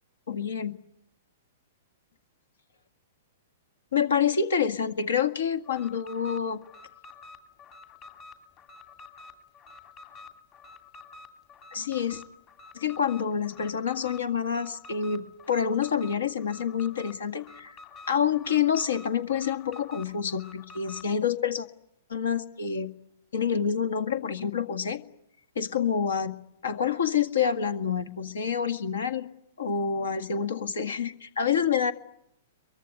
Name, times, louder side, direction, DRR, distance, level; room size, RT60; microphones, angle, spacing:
voice 1, 0.3-0.7 3.9-6.6 11.7-12.2 12.7-17.8 18.1-21.7 22.1-22.9 23.3-25.0 25.6-26.4 26.6-29.3 29.6-31.9, left 7 dB, 70° left, 10 dB, 1.9 m, -27 dB
Alarm, 5.6-21.1, left 3 dB, 30° left, 2.7 m, -49 dB
23.5 x 23.5 x 9.7 m, 0.77 s
figure-of-eight pair, 110°, 0 cm